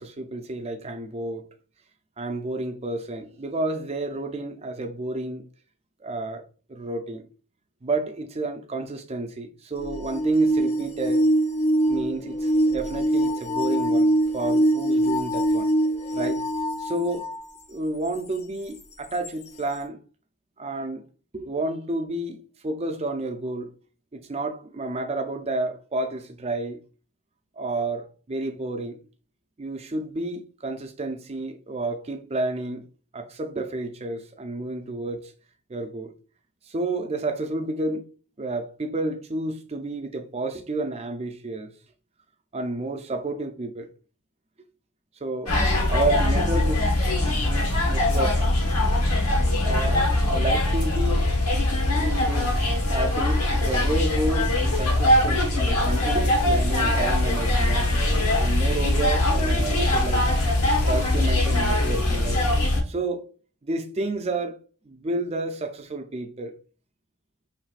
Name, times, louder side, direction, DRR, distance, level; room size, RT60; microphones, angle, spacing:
voice 1, 0.0-1.5 2.2-5.5 6.0-7.2 7.8-11.3 11.9-15.7 16.1-16.5 16.8-17.3 17.7-20.0 20.6-21.0 21.3-23.7 24.1-26.8 27.6-29.0 29.6-32.9 33.1-35.3 35.7-36.1 36.7-38.1 38.4-41.7 42.5-43.9 45.2-45.6 45.9-47.1 47.5-48.4 49.6-51.3 51.9-57.9 58.4-60.3 60.9-62.5 62.9-63.3 63.6-64.6 64.8-66.6, right 2 dB, 30° right, 0.5 m, -30 dB
sound 1, 9.8-17.4 18.1-18.2 19.2-19.3, right 1 dB, 30° left, 0.4 m, -23 dB
sound 2, 45.5-62.8, left 1 dB, 90° left, 1.3 m, -22 dB
4.7 x 3.2 x 2.4 m
head